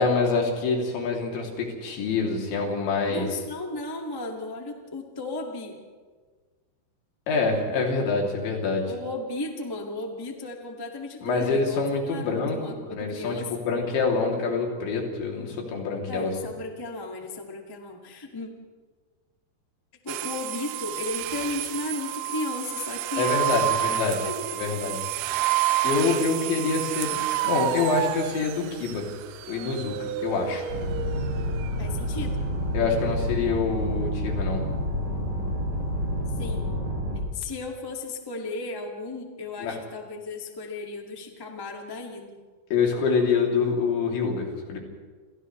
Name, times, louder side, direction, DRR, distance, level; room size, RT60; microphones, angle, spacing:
voice 1, 0.0-3.3 7.3-9.0 11.2-16.3 23.2-25.0 25.8-29.1 29.5-30.7 32.7-34.7 39.6-39.8 42.7-44.8, left 4 dB, 90° left, 0 dB, 5.5 m, -26 dB
voice 2, 3.1-5.8 8.9-13.7 16.1-18.5 20.0-23.7 24.2-24.5 31.8-32.4 36.4-36.7 37.3-42.4, left 2 dB, 35° left, 1 dB, 0.3 m, -35 dB
sound 1, 20.1-31.8, right 13 dB, 75° right, 2.4 m, -30 dB
sound 2, 30.7-37.2, equal, 60° left, 7.5 m, -29 dB
29.5 x 27.0 x 3.3 m, 1.5 s
omnidirectional pair, 5.1 m